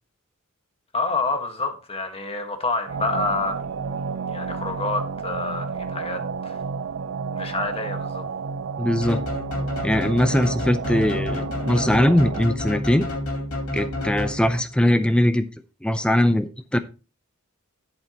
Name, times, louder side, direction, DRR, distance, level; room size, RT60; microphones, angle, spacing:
voice 1, 0.9-4.0 4.3-6.6 7.3-8.2, left 3 dB, 25° left, 1.5 m, -28 dB
sound 1, 2.9-12.5, right 5 dB, 60° right, 0.5 m, -31 dB
voice 2, 8.8-9.2 9.8-13.1 13.7-15.5 15.8-16.8, left 1 dB, 5° left, 0.5 m, -21 dB
sound 2, 9.0-14.8, left 1 dB, 80° left, 2.7 m, -29 dB
11.5 x 8.1 x 2.9 m
head